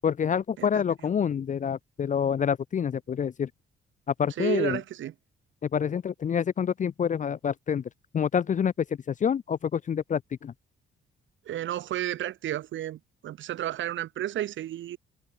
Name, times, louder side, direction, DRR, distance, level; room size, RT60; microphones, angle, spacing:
voice 1, 0.0-3.5 4.2-4.8 5.6-7.8 8.1-8.7 9.1-10.5, left 7 dB, 40° left, 0.6 m, -27 dB
voice 2, 0.6-1.1 4.4-5.1 11.5-15.0, right 12 dB, 75° right, 1.8 m, -32 dB
cardioid pair, 90°, 20 cm